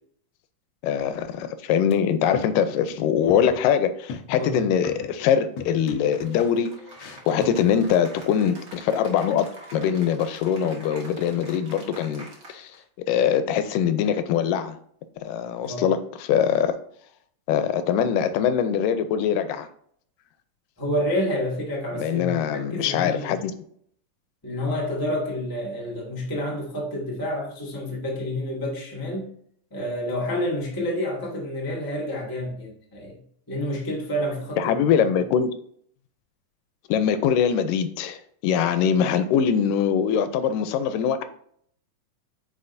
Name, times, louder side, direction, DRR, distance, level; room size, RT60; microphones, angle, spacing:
voice 1, 0.8-6.7 7.3-9.5 9.7-12.8 13.1-14.8 15.2-16.7 17.5-19.7 21.9-23.5 34.6-35.5 36.9-41.2, left 8 dB, 85° left, 10 dB, 2.3 m, -23 dB
sound 1, 1.9-2.0 2.3-3.0 3.3-3.7 4.1-5.3 5.6-8.0, left 4 dB, 65° left, 1.9 m, -39 dB
Cheering / Applause, 6.1-12.8, right 1 dB, 40° right, 1.3 m, -45 dB
voice 2, 20.8-23.3 24.4-29.4 29.7-33.2 33.5-34.8, left 1 dB, 15° left, -3 dB, 0.7 m, -29 dB
8.4 x 5.2 x 2.6 m, 0.64 s
omnidirectional pair, 3.8 m